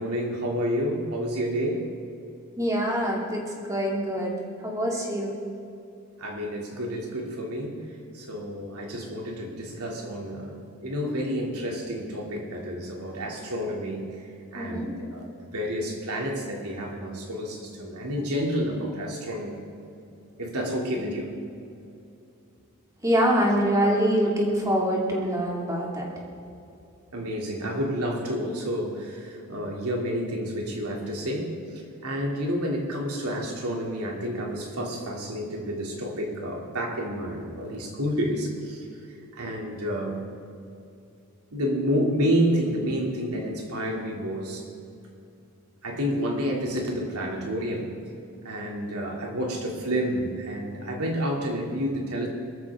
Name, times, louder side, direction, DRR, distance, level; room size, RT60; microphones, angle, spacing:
voice 1, 0.0-1.9 6.2-7.8 8.1-14.0 14.5-19.6 20.4-21.3 27.1-31.6 32.0-38.8 39.3-40.3 41.5-44.6 45.8-47.9 48.4-52.3, equal, 85° right, -1 dB, 2.9 m, -29 dB
voice 2, 2.6-3.4 3.7-4.3 4.6-5.3 14.5-14.9 23.0-26.1, equal, 15° right, -2 dB, 2.5 m, -24 dB
22.5 x 14.0 x 3.7 m, 2.6 s
head